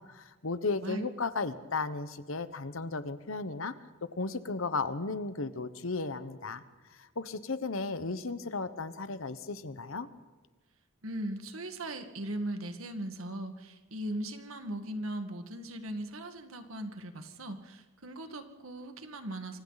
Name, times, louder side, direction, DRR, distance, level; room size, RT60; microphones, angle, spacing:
voice 1, 0.0-3.7 4.0-6.6 7.0-10.1, left 3 dB, 75° left, 12 dB, 1.2 m, -35 dB
voice 2, 11.0-19.6, right 1 dB, 85° right, 7 dB, 1.9 m, -39 dB
28.0 x 25.0 x 4.2 m, 1.3 s
head